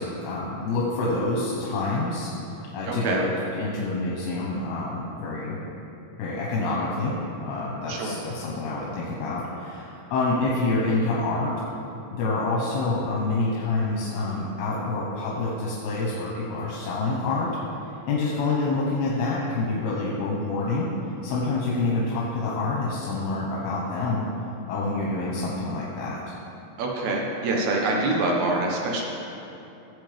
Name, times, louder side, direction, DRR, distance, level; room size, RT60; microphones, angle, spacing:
voice 1, 0.0-2.3 2.7-5.6 6.2-11.5 12.1-17.5 18.1-20.9 21.2-24.2 24.7-26.4, left 3 dB, 85° left, -5 dB, 3.1 m, -27 dB
voice 2, 2.9-3.2 7.9-8.2 26.8-29.0, right 2 dB, 65° right, -1 dB, 1.9 m, -25 dB
15.0 x 7.8 x 3.5 m, 2.9 s
omnidirectional pair, 4.5 m